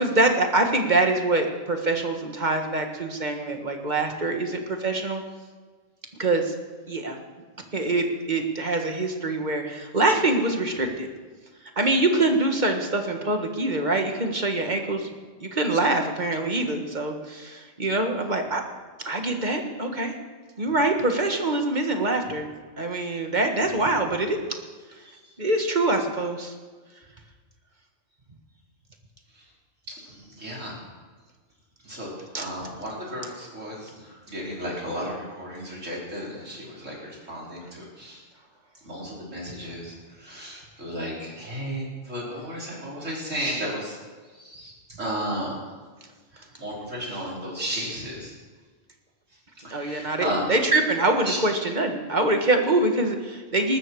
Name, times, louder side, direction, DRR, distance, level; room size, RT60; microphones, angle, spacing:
voice 1, 0.0-5.2 6.2-6.5 6.9-7.2 7.7-11.1 11.8-15.1 15.4-18.6 19.0-20.1 20.6-22.5 22.8-24.4 25.4-26.5 32.3-32.5 49.7-53.8, right 2 dB, 35° right, 4 dB, 1.8 m, -24 dB
voice 2, 29.9-30.7 31.8-38.2 38.8-44.0 44.4-44.7 45.0-45.6 46.4-48.3 49.6-50.5 51.2-51.4, equal, 75° right, -5 dB, 5.3 m, -34 dB
20.0 x 13.0 x 4.9 m, 1.4 s
omnidirectional pair, 1.3 m